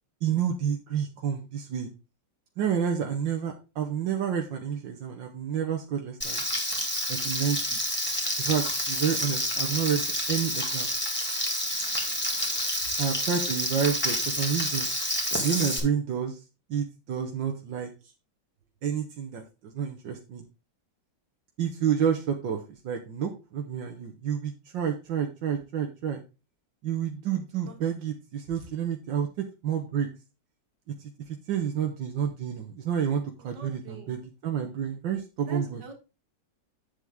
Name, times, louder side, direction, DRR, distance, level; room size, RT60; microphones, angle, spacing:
voice 1, 0.2-1.9 2.6-6.4 7.1-7.8 8.4-10.0 10.3-10.9 13.0-14.9 15.4-16.4 16.7-17.9 18.8-20.4 21.6-26.2 26.8-29.3 29.6-30.1 31.5-35.8, right 8 dB, 90° right, 3 dB, 1.8 m, -29 dB
Frying (food), 6.2-15.8, equal, 5° left, 2.3 m, -29 dB
voice 2, 33.4-34.1 35.5-35.9, right 4 dB, 70° right, 5 dB, 2.4 m, -43 dB
8.3 x 6.9 x 3.6 m, 0.29 s
omnidirectional pair, 1.9 m